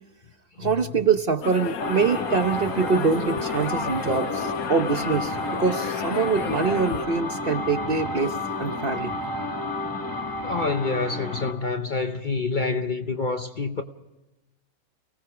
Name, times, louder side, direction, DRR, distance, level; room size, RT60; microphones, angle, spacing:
voice 1, 0.6-9.1, right 5 dB, 45° right, 1.0 m, -24 dB
sound 1, 1.4-7.1, left 8 dB, 75° left, 1.4 m, -33 dB
sound 2, 1.8-11.6, left 2 dB, 15° left, 2.1 m, -31 dB
voice 2, 10.4-13.8, left 4 dB, 40° left, 0.9 m, -27 dB
30.0 x 18.5 x 4.9 m
omnidirectional pair, 1.6 m